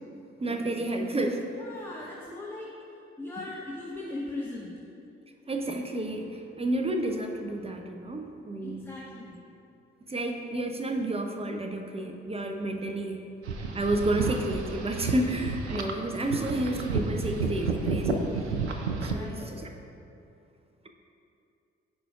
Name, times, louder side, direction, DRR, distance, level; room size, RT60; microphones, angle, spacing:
voice 1, 0.4-1.5 5.5-8.9 10.0-13.2 13.7-18.5 19.0-19.7, right 1 dB, 20° right, 4 dB, 0.7 m, -31 dB
voice 2, 1.6-2.7 3.2-4.7 8.6-9.4 19.1-19.7, left 2 dB, 5° left, -5 dB, 1.0 m, -39 dB
sound 1, 13.5-19.1, right 4 dB, 85° right, 0.5 m, -31 dB
14.5 x 5.0 x 2.4 m, 2.6 s
figure-of-eight pair, 40°, 33 cm